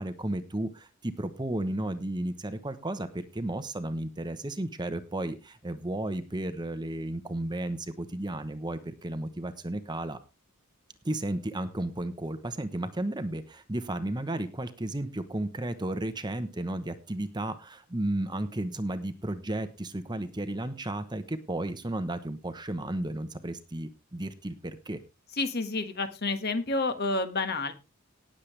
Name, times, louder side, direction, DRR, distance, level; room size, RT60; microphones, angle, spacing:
voice 1, 0.0-10.2 11.0-25.0, right 1 dB, 20° right, 10 dB, 0.9 m, -33 dB
voice 2, 25.4-27.7, left 3 dB, 50° left, 8 dB, 1.5 m, -29 dB
18.5 x 7.6 x 3.3 m, 0.28 s
head